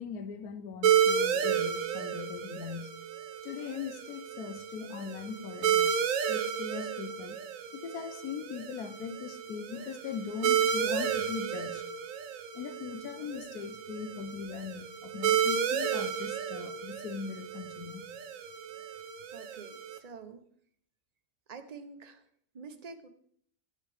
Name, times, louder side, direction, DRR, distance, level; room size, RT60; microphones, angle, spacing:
voice 1, 0.0-3.0 3.4-6.0 6.3-7.4 7.7-11.9 12.5-18.0, left 7 dB, 70° left, 1.3 m, -40 dB
sound 1, 0.8-20.0, right 8 dB, 60° right, 1.1 m, -32 dB
voice 2, 19.3-20.4 21.5-22.2 22.5-23.1, right 5 dB, 35° right, 0.7 m, -47 dB
15.0 x 8.0 x 3.4 m
omnidirectional pair, 1.7 m